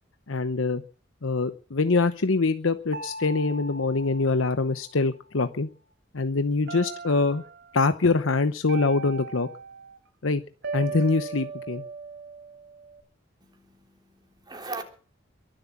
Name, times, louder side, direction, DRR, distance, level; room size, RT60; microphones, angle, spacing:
voice 1, 0.3-0.8 1.2-5.7 6.1-7.4 7.7-9.5 10.2-10.4 10.7-11.8, left 3 dB, 85° left, 10 dB, 0.9 m, -24 dB
sound 1, 2.9-5.3 6.7-7.7 8.7-10.0 10.6-13.0, right 4 dB, 60° right, 3.8 m, -38 dB
voice 2, 13.4-14.8, right 3 dB, 20° right, 4 dB, 3.5 m, -40 dB
22.5 x 7.8 x 7.2 m, 0.40 s
head